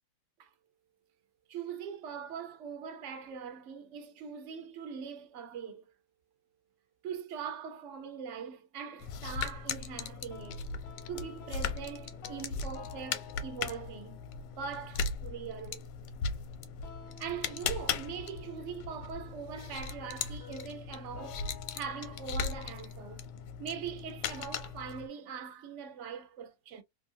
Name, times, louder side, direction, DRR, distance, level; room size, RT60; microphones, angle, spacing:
voice 1, 1.5-5.9 7.0-10.6 11.1-14.2 14.6-15.9 17.2-23.3 23.6-26.8, right 7 dB, 65° right, 0.7 m, -42 dB
sound 1, 9.0-25.1, left 5 dB, 85° left, 1.3 m, -38 dB
sound 2, 10.3-25.3, left 6 dB, 65° left, 0.8 m, -55 dB
2.9 x 2.5 x 2.6 m
omnidirectional pair, 1.9 m